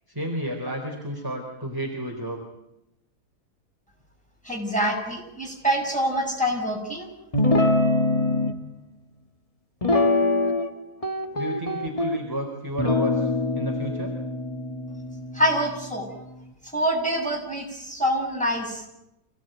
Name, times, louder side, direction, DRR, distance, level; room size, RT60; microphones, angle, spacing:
voice 1, 0.1-2.4 11.3-13.3 13.5-14.1, right 1 dB, 10° right, 1 dB, 3.9 m, -31 dB
voice 2, 4.4-7.1 15.3-16.1 16.6-18.9, equal, 5° left, 0 dB, 7.3 m, -25 dB
Guitar, 7.3-8.5 9.8-10.7 11.0-12.2 12.8-16.3, left 2 dB, 20° left, 1.7 m, -24 dB
27.5 x 18.0 x 9.2 m, 0.87 s
omnidirectional pair, 1.7 m